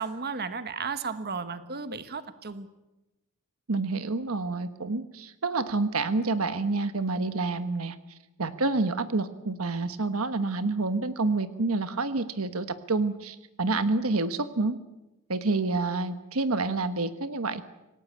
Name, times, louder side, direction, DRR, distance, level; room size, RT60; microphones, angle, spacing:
voice 1, 0.0-2.7, right 5 dB, 45° right, 11 dB, 1.3 m, -34 dB
voice 2, 3.7-8.0 8.4-14.8 15.3-17.6, right 3 dB, 70° right, 11 dB, 1.3 m, -28 dB
26.5 x 18.0 x 8.3 m, 0.98 s
head